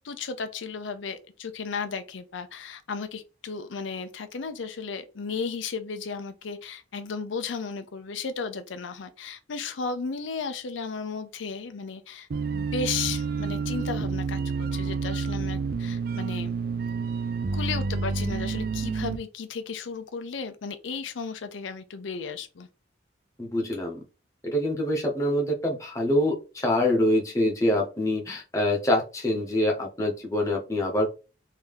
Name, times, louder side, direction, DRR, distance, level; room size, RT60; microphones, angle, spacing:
voice 1, 0.0-16.5 17.5-22.7, left 5 dB, 85° left, 0.5 m, -34 dB
sound 1, 12.3-19.2, right 4 dB, 50° right, 0.3 m, -29 dB
voice 2, 23.4-24.0 24.4-31.1, left 1 dB, 15° left, 0.9 m, -25 dB
3.5 x 2.7 x 3.5 m
head